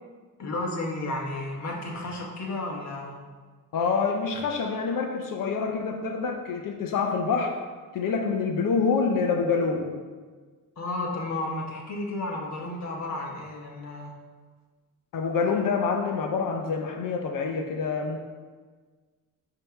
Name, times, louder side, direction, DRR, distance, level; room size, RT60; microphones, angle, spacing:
voice 1, 0.4-3.2 10.8-14.1, left 2 dB, 55° left, 0 dB, 1.3 m, -32 dB
voice 2, 3.7-7.6 7.9-10.0 15.1-18.2, left 5 dB, 80° left, 4 dB, 0.7 m, -26 dB
8.8 x 3.0 x 5.8 m, 1.4 s
wide cardioid pair, 145°, 32 cm